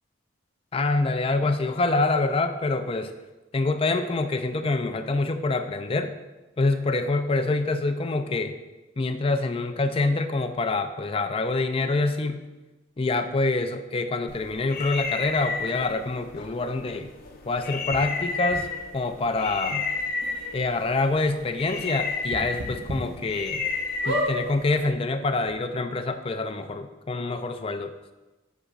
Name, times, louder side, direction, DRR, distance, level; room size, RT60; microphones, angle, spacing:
voice 1, 0.7-3.1 3.5-6.1 6.6-8.6 9.0-12.4 13.0-17.1 17.5-18.7 18.9-19.9 20.5-23.6 24.1-27.9, left 3 dB, 30° left, 8 dB, 0.4 m, -26 dB
sound 1, 14.3-24.9, left 4 dB, 50° left, 0.8 m, -32 dB
sound 2, 17.9-18.0 18.5-18.6 19.6-19.7 20.0-20.1 20.5-20.6 22.3-23.0 23.5-23.6 24.0-24.3 25.2-25.3 25.4-25.5, equal, 65° right, 1.2 m, -29 dB
8.2 x 7.2 x 2.4 m, 1.1 s
head